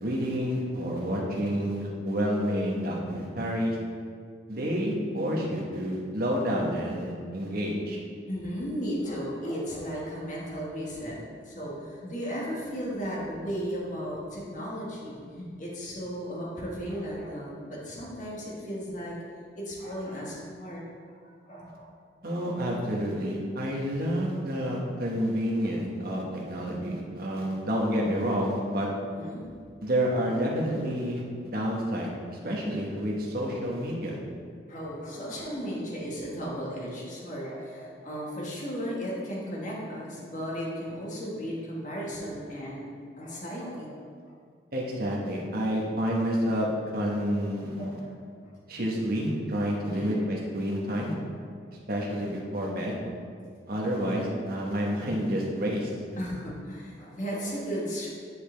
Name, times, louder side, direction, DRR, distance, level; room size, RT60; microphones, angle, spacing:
voice 1, 0.0-3.8 4.5-8.0 22.2-28.9 29.8-34.2 44.7-46.7 46.9-47.9 48.7-51.1 51.9-53.0 53.7-55.9, equal, 55° right, -2 dB, 1.2 m, -29 dB
voice 2, 6.3-6.7 8.3-19.2 19.5-20.8 21.1-21.9 29.1-29.5 34.7-42.9 43.2-44.3 47.8-48.5 49.8-50.2 50.7-50.8 56.2-58.1, equal, 45° left, -4 dB, 1.6 m, -35 dB
9.5 x 5.1 x 3.4 m, 2.1 s
head